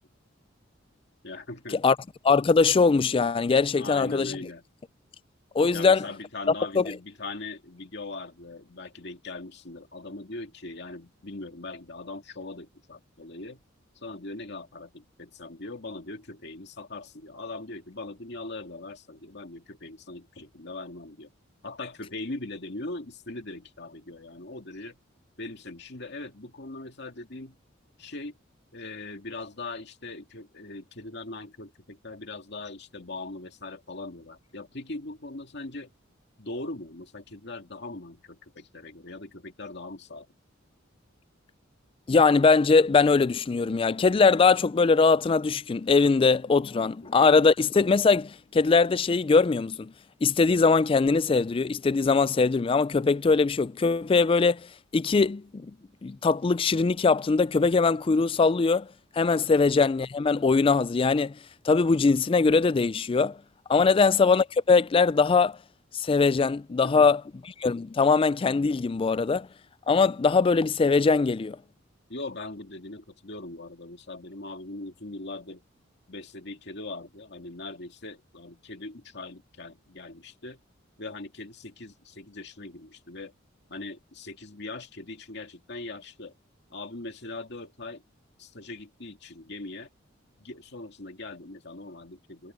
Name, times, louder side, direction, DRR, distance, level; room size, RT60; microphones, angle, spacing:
voice 1, 1.2-1.8 3.8-4.7 5.7-13.6 14.0-21.3 21.6-25.0 25.4-27.6 28.0-28.3 28.7-35.9 36.4-40.3 47.0-47.4 59.3-59.6 66.8-67.1 72.1-75.6 76.1-80.6 81.0-83.3 83.7-86.3 86.7-88.0 88.4-89.9 90.4-92.5, left 2 dB, 60° left, 2.4 m, -40 dB
voice 2, 2.2-4.4 5.5-6.1 6.8-6.9 42.1-49.9 50.2-55.7 56.0-58.9 59.2-61.4 61.6-63.4 63.7-65.6 65.9-67.2 67.6-69.5 69.9-71.6, left 4 dB, 25° left, 0.3 m, -21 dB
head